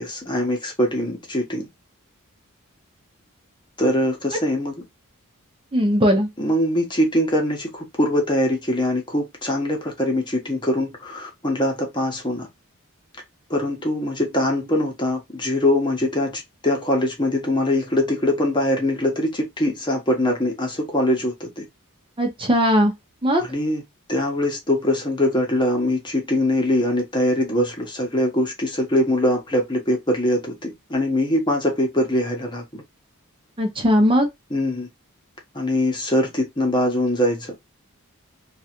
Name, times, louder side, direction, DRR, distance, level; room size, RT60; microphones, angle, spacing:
voice 1, 0.0-1.7 3.8-4.8 6.4-12.5 13.5-21.6 23.4-23.8 24.1-32.8 34.5-34.9 35.5-37.5, left 1 dB, 20° left, 1.0 m, -22 dB
voice 2, 5.7-6.3 22.2-22.9 23.2-23.4 33.6-34.3, equal, 25° right, 0.8 m, -18 dB
3.0 x 2.5 x 2.9 m
head